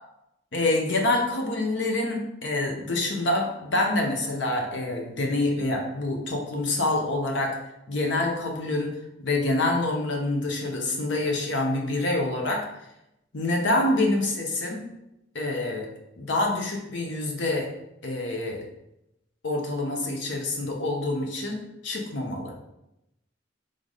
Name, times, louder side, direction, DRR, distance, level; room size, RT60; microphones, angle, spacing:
voice 1, 0.5-7.6 7.9-8.9 9.2-12.6 13.3-14.9 15.3-15.9 16.2-17.7 18.0-18.7 19.4-22.5, left 2 dB, 70° left, 1 dB, 0.9 m, -26 dB
3.8 x 3.4 x 3.9 m, 0.85 s
head